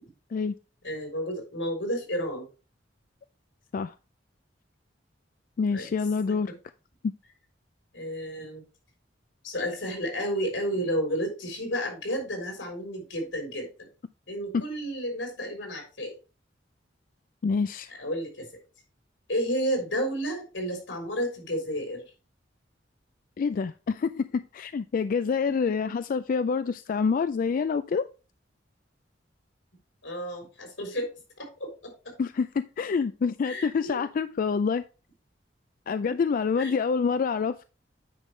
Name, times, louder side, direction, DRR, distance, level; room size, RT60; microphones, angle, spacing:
voice 1, 0.8-2.5 5.7-5.9 7.9-8.6 9.4-13.9 14.3-16.2 18.0-18.5 19.3-22.0 30.0-32.1 33.5-34.0 36.6-36.7, equal, 85° left, 3.8 m, -31 dB
voice 2, 5.6-6.5 7.0-7.1 14.5-14.7 17.4-17.9 23.4-28.1 32.2-34.8 35.9-37.6, left 5 dB, 50° left, 0.3 m, -27 dB
9.3 x 5.4 x 3.2 m
head